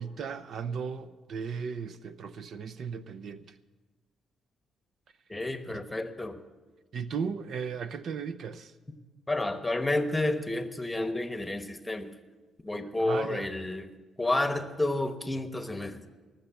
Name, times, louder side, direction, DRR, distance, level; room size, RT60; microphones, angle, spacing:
voice 1, 0.0-3.4 5.7-5.8 6.9-8.7 13.0-13.5, right 6 dB, 60° right, 0.6 m, -36 dB
voice 2, 5.3-6.4 9.3-12.1 12.6-13.9 14.2-16.0, left 2 dB, 10° left, 1.1 m, -30 dB
18.5 x 6.8 x 8.1 m
cardioid pair, 90°, 0 cm